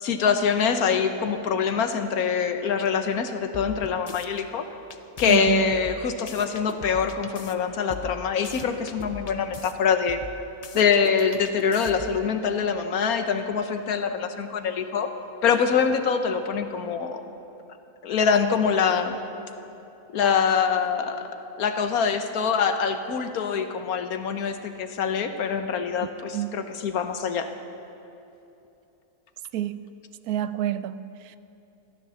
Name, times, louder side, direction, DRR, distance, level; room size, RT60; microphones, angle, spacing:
voice 1, 0.0-4.7 5.2-10.2 10.7-15.1 15.4-17.2 18.0-19.2 20.1-21.3 21.6-27.5, left 6 dB, 80° left, 8 dB, 1.4 m, -24 dB
sound 1, 3.5-4.5 4.9-7.5 7.9-9.7 10.1-12.2, left 4 dB, 45° left, 0.5 m, -40 dB
voice 2, 5.3-5.7 26.3-26.6 29.5-29.8 30.3-31.4, right 13 dB, 90° right, 14 dB, 1.1 m, -28 dB
15.5 x 12.5 x 7.0 m, 2.9 s
omnidirectional pair, 1.6 m